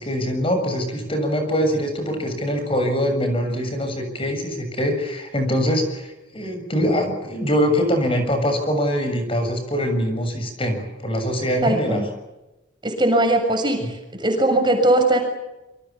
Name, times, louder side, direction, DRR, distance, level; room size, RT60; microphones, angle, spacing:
voice 1, 0.0-12.0, equal, 30° left, 6 dB, 7.0 m, -23 dB
voice 2, 11.6-12.0 12.8-13.9 14.2-15.2, right 1 dB, 25° right, 4 dB, 7.0 m, -19 dB
28.5 x 26.0 x 7.3 m, 0.98 s
head